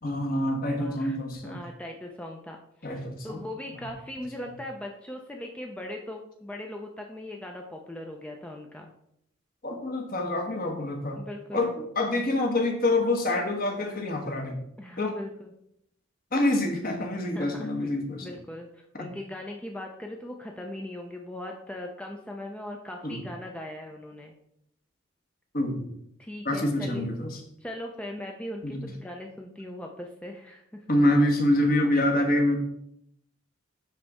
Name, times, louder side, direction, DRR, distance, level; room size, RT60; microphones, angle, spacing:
voice 1, 0.0-1.6 2.8-3.4 9.6-11.2 11.5-14.6 15.0-15.2 16.3-18.3 18.9-19.1 23.0-23.2 25.5-25.9 26.4-27.4 28.6-28.8 30.9-32.6, left 1 dB, 45° left, 3 dB, 1.2 m, -26 dB
voice 2, 0.8-1.2 1.4-8.9 11.2-11.7 14.8-15.5 17.3-17.9 18.2-24.3 26.2-27.0 27.6-30.9 31.8-31.9, left 1 dB, 5° left, 1 dB, 0.5 m, -39 dB
10.5 x 4.0 x 3.5 m, 0.74 s
head